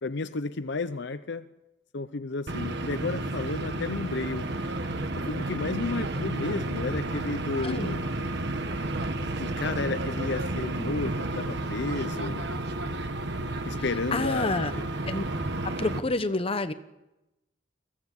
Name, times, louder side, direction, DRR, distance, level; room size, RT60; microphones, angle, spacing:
voice 1, 0.0-1.5 1.9-4.5 5.2-8.1 9.4-12.5 13.6-14.9, left 3 dB, 65° left, 12 dB, 0.7 m, -32 dB
sound 1, 2.5-16.0, right 2 dB, 60° right, 1.3 m, -31 dB
voice 2, 7.6-8.0 14.1-14.7 15.0-15.2 15.8-16.7, left 2 dB, 30° left, 11 dB, 1.0 m, -28 dB
23.5 x 16.0 x 8.3 m, 0.98 s
head